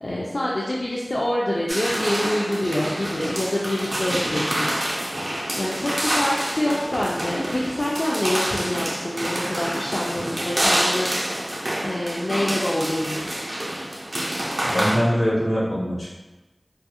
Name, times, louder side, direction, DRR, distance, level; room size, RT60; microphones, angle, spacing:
voice 1, 0.0-4.7 5.5-11.1 11.8-13.3, left 1 dB, 65° left, -5 dB, 0.3 m, -26 dB
sound 1, 1.7-15.0, right 1 dB, 60° right, 0.4 m, -27 dB
voice 2, 14.6-16.1, equal, 90° left, -7 dB, 0.9 m, -22 dB
2.3 x 2.3 x 2.8 m, 1.1 s
wide cardioid pair, 45°, 0 cm